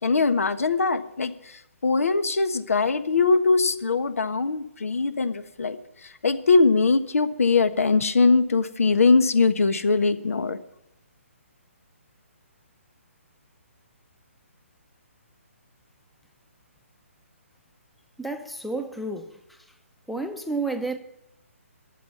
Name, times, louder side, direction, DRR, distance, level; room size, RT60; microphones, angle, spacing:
voice 1, 0.0-10.6, left 4 dB, 80° left, 1.3 m, -22 dB
voice 2, 18.2-19.6 20.1-21.0, right 3 dB, ahead, 0.7 m, -31 dB
12.5 x 7.6 x 9.5 m
hypercardioid pair, 150°, 8 cm